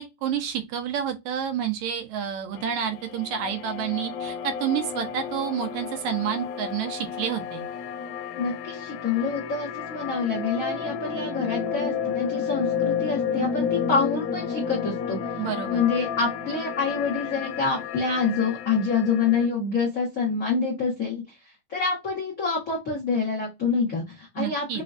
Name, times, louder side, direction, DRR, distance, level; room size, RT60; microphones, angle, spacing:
voice 1, 0.0-7.6 15.4-15.8 24.4-24.8, right 8 dB, 75° right, 1.9 m, -29 dB
sound 1, 2.6-19.5, left 7 dB, 80° left, 1.9 m, -31 dB
voice 2, 8.4-15.2 15.7-24.8, left 5 dB, 55° left, 0.9 m, -27 dB
4.9 x 2.2 x 2.4 m
omnidirectional pair, 3.5 m